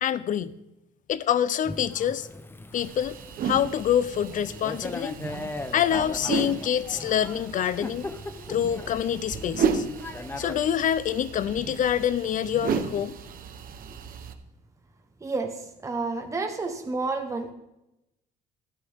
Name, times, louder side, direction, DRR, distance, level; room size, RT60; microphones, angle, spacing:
voice 1, 0.0-0.5 1.1-2.3 2.7-3.2 3.4-5.2 5.7-8.1 8.5-9.8 10.4-13.1, left 10 dB, 50° left, 17 dB, 0.7 m, -26 dB
Thunder / Rain, 1.6-10.5, left 2 dB, 15° left, 0.9 m, -39 dB
sound 1, 2.8-14.3, right 6 dB, 55° right, 1.2 m, -34 dB
voice 2, 15.2-17.5, right 3 dB, 20° right, 4 dB, 1.3 m, -30 dB
13.0 x 12.5 x 3.7 m, 0.90 s
cardioid pair, 110°, 17 cm